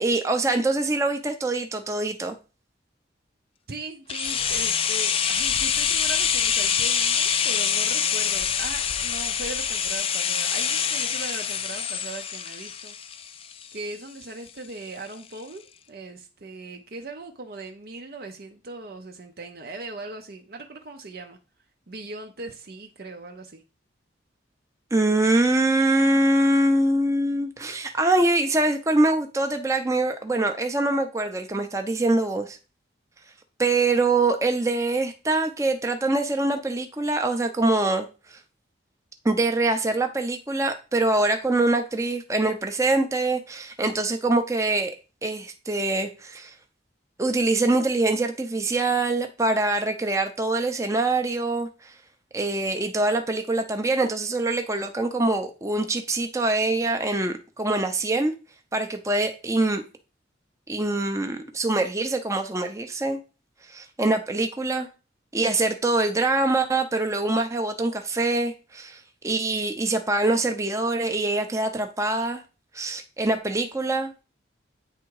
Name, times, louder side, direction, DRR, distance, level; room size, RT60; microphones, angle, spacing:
voice 1, 0.0-2.4 24.9-32.6 33.6-38.4 39.2-45.0 45.2-46.5 47.2-51.9 52.3-58.3 58.7-59.8 60.7-63.2 63.7-64.9 65.3-72.4 72.7-74.2, right 2 dB, 15° right, 0.7 m, -24 dB
voice 2, 3.7-12.9 13.7-21.4 21.9-23.6, right 2 dB, 55° right, 0.6 m, -39 dB
sound 1, 4.1-13.9 14.2-14.3, left 8 dB, 30° left, 0.4 m, -25 dB
8.8 x 3.5 x 4.7 m
head